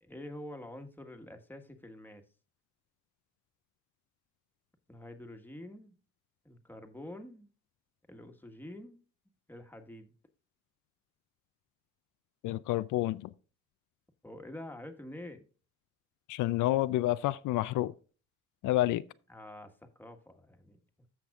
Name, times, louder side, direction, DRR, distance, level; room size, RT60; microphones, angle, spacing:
voice 1, 0.0-2.2 4.9-5.9 6.4-7.5 8.1-9.0 9.5-10.1 14.2-15.4 19.3-20.8, left 1 dB, 5° left, 1.5 m, -47 dB
voice 2, 12.4-13.3 16.3-17.9 18.6-19.0, left 15 dB, 80° left, 0.5 m, -29 dB
15.0 x 5.9 x 2.4 m
cardioid pair, 90°, 30 cm